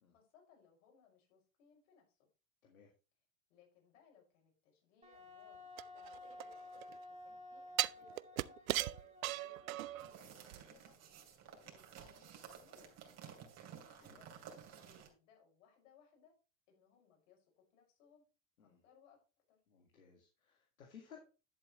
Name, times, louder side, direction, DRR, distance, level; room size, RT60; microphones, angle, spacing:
voice 1, 0.1-2.3 3.5-6.5 7.1-11.0 11.6-13.3 13.8-14.3 14.8-16.4 16.7-18.3 18.6-19.2 19.5-19.6, left 7 dB, 65° left, 1 dB, 5.9 m, -68 dB
Wind instrument woodwind instrument, 5.0-10.5, left 2 dB, 15° right, 2.6 m, -54 dB
sound 1, 5.8-6.9 7.8-10.1 10.5-10.6, right 16 dB, 80° right, 0.5 m, -38 dB
sound 2, 10.0-15.1, right 8 dB, 40° right, 2.9 m, -54 dB
voice 2, 19.7-21.2, left 7 dB, 85° left, 2 dB, 1.9 m, -59 dB
11.0 x 7.6 x 3.1 m, 0.32 s
hypercardioid pair, 95°, 41 cm